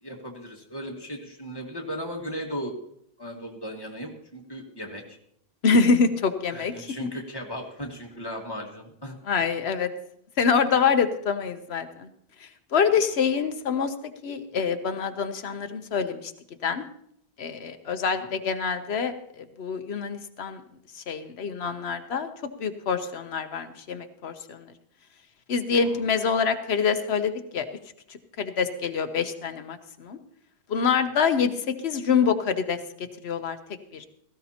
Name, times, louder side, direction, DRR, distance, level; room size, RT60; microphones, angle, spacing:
voice 1, 0.0-2.7 3.2-5.2 6.5-9.1 18.1-18.3 25.8-26.0, equal, 20° left, 1 dB, 1.8 m, -36 dB
voice 2, 5.6-6.9 9.3-9.9 10.4-12.1 12.4-13.9 14.2-16.3 16.6-16.9 17.4-20.6 20.9-22.3 22.6-24.7 25.5-27.7 28.4-30.2 30.7-32.8 33.2-33.6 33.9-34.0, left 5 dB, 80° left, 9 dB, 1.1 m, -25 dB
17.0 x 15.0 x 2.9 m, 0.71 s
omnidirectional pair, 1.1 m